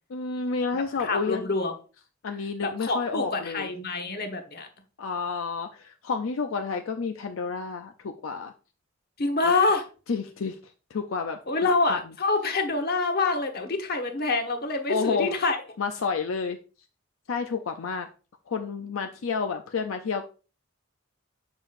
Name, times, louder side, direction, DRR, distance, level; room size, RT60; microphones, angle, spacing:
voice 1, 0.1-1.4 2.2-3.7 5.0-8.5 9.4-9.5 10.1-10.6 10.9-12.0 14.9-15.4 15.8-16.6 17.3-18.1 18.5-20.2, left 5 dB, 80° left, 0.5 m, -30 dB
voice 2, 1.0-1.7 2.6-4.7 9.2-9.8 11.5-15.6, left 3 dB, 50° left, 1.2 m, -26 dB
7.0 x 5.7 x 2.5 m
head